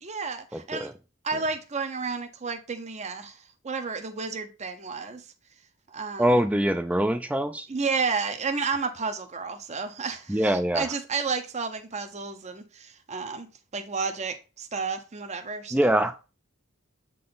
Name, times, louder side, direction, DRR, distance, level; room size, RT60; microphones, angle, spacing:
voice 1, 0.0-0.9 1.2-3.4 3.6-5.2 5.9-6.3 7.7-13.5 13.7-15.9, right 4 dB, 35° right, 0.7 m, -31 dB
voice 2, 0.5-0.9 6.2-7.7 10.3-10.9 15.7-16.3, right 1 dB, 5° right, 0.4 m, -24 dB
7.6 x 3.8 x 3.9 m
head